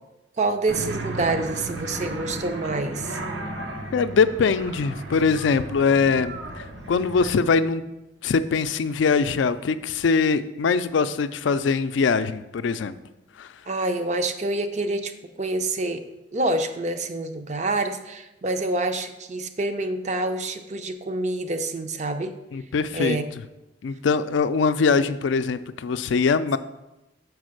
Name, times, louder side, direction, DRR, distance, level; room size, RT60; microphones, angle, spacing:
voice 1, 0.4-3.2 13.7-15.1 15.4-16.0 16.3-22.3 22.9-23.2, right 2 dB, 40° right, 8 dB, 0.5 m, -27 dB
sound 1, 0.7-7.3, right 2 dB, 85° right, 1.0 m, -34 dB
voice 2, 3.9-7.8 8.2-12.9 13.4-13.5 22.5-23.2 23.8-26.6, left 5 dB, 80° left, 12 dB, 0.4 m, -22 dB
5.2 x 4.7 x 6.3 m, 0.97 s
head